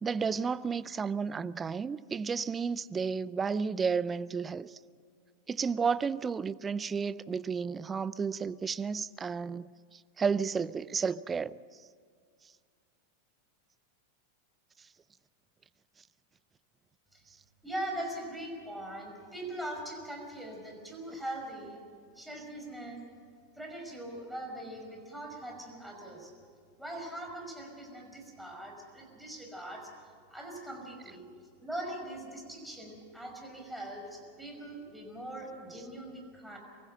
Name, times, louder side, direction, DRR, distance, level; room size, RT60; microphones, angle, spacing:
voice 1, 0.0-4.8 5.5-11.6, right 5 dB, 20° right, 0.5 m, -32 dB
voice 2, 17.6-21.8 22.2-23.0 23.6-26.3 26.8-29.9 30.3-31.3 31.6-36.6, right 1 dB, ahead, 5.5 m, -41 dB
23.5 x 15.5 x 7.6 m
hypercardioid pair, 95°, 0 cm